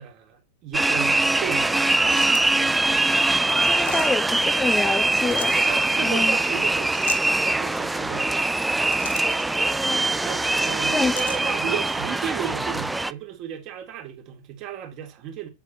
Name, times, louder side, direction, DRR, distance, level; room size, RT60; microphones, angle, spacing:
voice 1, 0.0-1.7 5.5-8.3 10.2-15.5, right 9 dB, 40° right, 3.5 m, -34 dB
sound 1, 0.7-13.1, right 2 dB, 5° right, 0.6 m, -22 dB
sound 2, 1.9-2.7 3.7-4.1 5.1-5.7 6.9-7.3 8.6-9.4 11.0-11.4, left 8 dB, 60° left, 2.1 m, -36 dB
voice 2, 3.4-5.5 6.0-6.4 9.6-10.1 10.9-11.1, left 3 dB, 10° left, 1.0 m, -27 dB
8.8 x 8.2 x 4.3 m
figure-of-eight pair, 90°, 0 cm